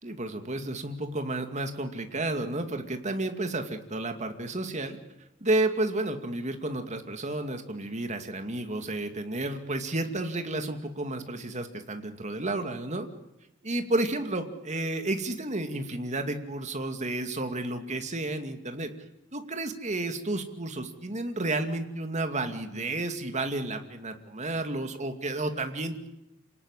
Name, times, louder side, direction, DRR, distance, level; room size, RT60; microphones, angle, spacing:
voice 1, 0.0-5.0 5.4-13.1 13.6-18.9 19.3-26.1, right 2 dB, 35° right, 6 dB, 2.4 m, -31 dB
27.5 x 18.5 x 10.0 m, 0.90 s
head